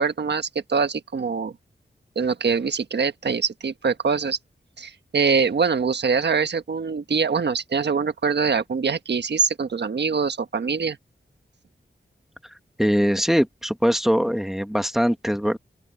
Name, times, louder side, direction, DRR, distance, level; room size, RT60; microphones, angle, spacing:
voice 1, 0.0-1.5 2.1-4.4 4.8-11.0, right 5 dB, 70° right, 1.3 m, -23 dB
voice 2, 12.8-15.6, equal, ahead, 2.1 m, -22 dB
open air
wide cardioid pair, 105°, 18 cm